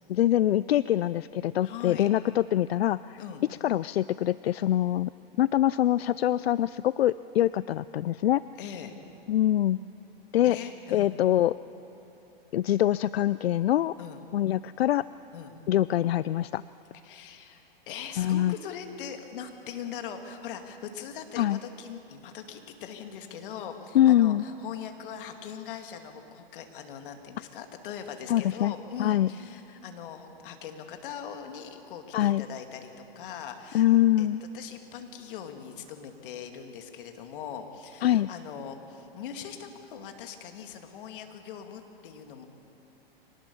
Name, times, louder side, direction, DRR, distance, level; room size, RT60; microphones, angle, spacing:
voice 1, 0.1-3.2 3.6-5.1 5.4-8.4 9.3-9.8 10.3-10.6 10.9-11.6 12.5-13.9 14.3-15.0 15.7-16.6 18.2-18.5 21.4-21.6 23.9-24.4 28.3-28.7 29.0-29.3 32.1-32.4 33.7-34.4 38.0-38.3, left 12 dB, 85° left, 17 dB, 0.4 m, -24 dB
voice 2, 1.6-2.1 3.2-3.4 8.6-8.9 10.4-11.1 14.0-14.2 15.3-15.5 17.0-33.9 34.2-34.3 34.5-42.5, left 8 dB, 60° left, 6 dB, 2.4 m, -41 dB
24.0 x 19.5 x 7.0 m, 3.0 s
hypercardioid pair, 125°, 30 cm